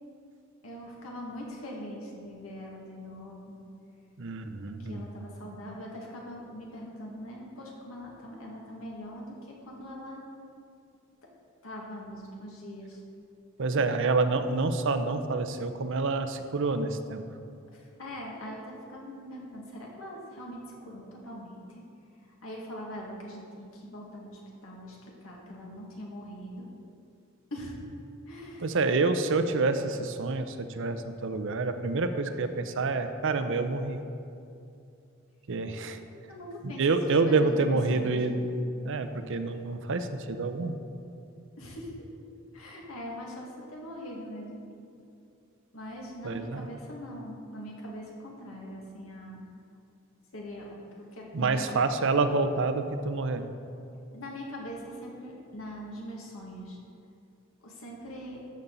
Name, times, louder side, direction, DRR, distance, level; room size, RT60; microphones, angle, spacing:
voice 1, 0.6-3.6 4.8-10.2 11.6-13.0 13.6-13.7 17.7-21.8 22.2-26.7 27.5-27.8 28.3-28.7 36.3-36.8 37.3-38.2 41.6-41.9 42.5-44.6 45.7-49.4 50.3-51.8 54.1-56.8 57.6-58.4, equal, 80° left, -2 dB, 2.0 m, -42 dB
voice 2, 4.2-5.1 13.6-17.2 28.6-34.0 35.5-36.0 36.6-40.8 46.2-46.7 51.3-53.5, right 3 dB, 65° right, 9 dB, 0.6 m, -28 dB
12.5 x 7.1 x 4.0 m, 2.6 s
head